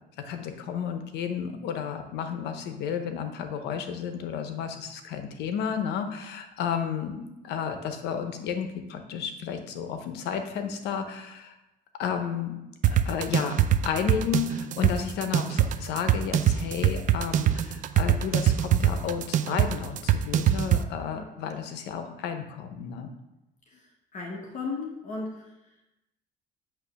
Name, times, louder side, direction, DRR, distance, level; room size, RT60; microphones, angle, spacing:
voice 1, 0.2-11.5 12.0-12.6 12.9-13.6 13.8-23.1, left 7 dB, 85° left, 7 dB, 0.8 m, -32 dB
sound 1, 12.8-20.8, right 11 dB, 50° right, 0.4 m, -23 dB
voice 2, 24.1-25.5, left 4 dB, 45° left, -1 dB, 1.1 m, -35 dB
8.2 x 3.0 x 5.9 m, 0.94 s
cardioid pair, 110°, 17 cm